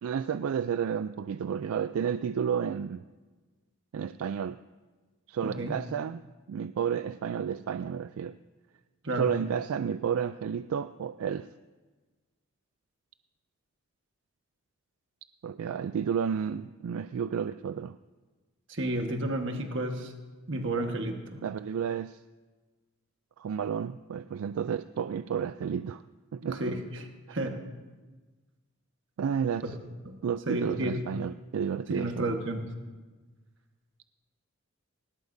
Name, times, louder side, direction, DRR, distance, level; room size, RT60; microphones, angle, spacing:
voice 1, 0.0-3.0 3.9-4.6 5.3-6.2 6.5-8.4 9.2-11.5 15.4-18.0 21.4-22.2 23.4-26.0 26.3-26.7 27.3-27.4 29.2-29.7 30.2-32.3, right 7 dB, 80° right, 13 dB, 0.3 m, -31 dB
voice 2, 5.4-5.8 9.0-9.3 18.7-20.1 20.5-21.4 26.4-27.6 29.6-29.7 30.0-30.2 30.5-31.2 31.9-32.7, right 1 dB, 55° right, 4 dB, 1.4 m, -32 dB
19.5 x 18.0 x 2.7 m, 1.3 s
head